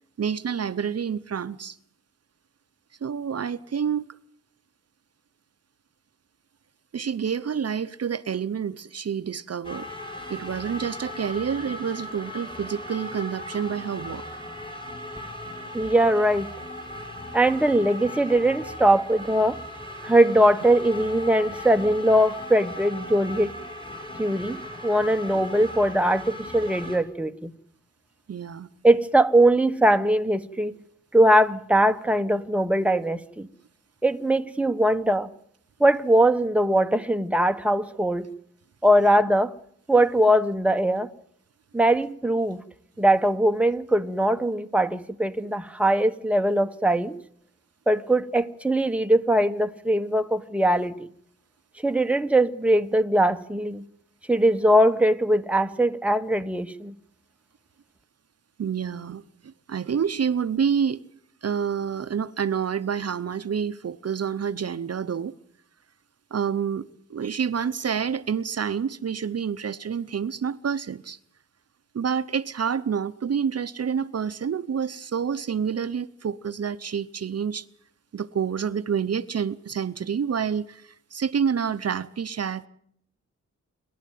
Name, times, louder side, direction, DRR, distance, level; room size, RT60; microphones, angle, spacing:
voice 1, 0.2-1.8 3.0-4.1 6.9-9.9 10.3-14.2 28.3-28.7 58.6-61.1 61.4-65.3 66.3-71.2 71.9-77.6 78.1-82.7, right 7 dB, 55° right, 0.8 m, -28 dB
sound 1, 9.6-27.0, left 1 dB, 15° left, 6.1 m, -38 dB
voice 2, 15.7-16.5 17.3-19.6 20.0-23.5 24.2-27.5 28.8-30.7 31.1-33.5 34.0-35.3 35.8-38.3 38.8-39.5 39.9-41.1 41.7-42.6 43.0-47.1 47.9-50.9 51.8-53.8 54.3-56.9, right 1 dB, 5° right, 1.1 m, -21 dB
27.5 x 12.0 x 9.3 m
wide cardioid pair, 85°, 29 cm